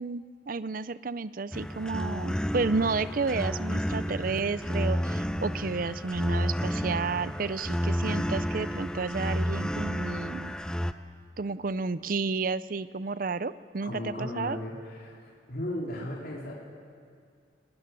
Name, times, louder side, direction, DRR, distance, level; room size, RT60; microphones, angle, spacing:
voice 1, 0.0-10.6 11.4-14.6, right 4 dB, 45° right, 16 dB, 0.5 m, -31 dB
sound 1, 1.5-10.9, equal, 5° left, 0.6 m, -31 dB
voice 2, 13.9-15.2 15.5-16.5, left 1 dB, 55° left, -4 dB, 3.7 m, -35 dB
24.0 x 19.0 x 9.8 m, 2.2 s
head